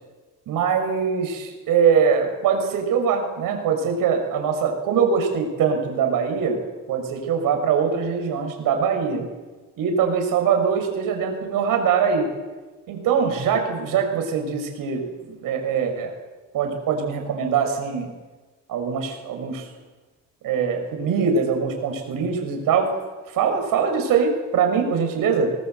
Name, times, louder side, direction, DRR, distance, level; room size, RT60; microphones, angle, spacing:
voice 1, 0.5-6.6 6.9-9.3 9.8-12.3 12.9-16.1 16.5-18.1 18.7-19.7 20.4-22.9 23.3-25.5, right 6 dB, 75° right, 4 dB, 6.5 m, -22 dB
24.5 x 19.0 x 8.2 m, 1.3 s
cardioid pair, 100°, 33 cm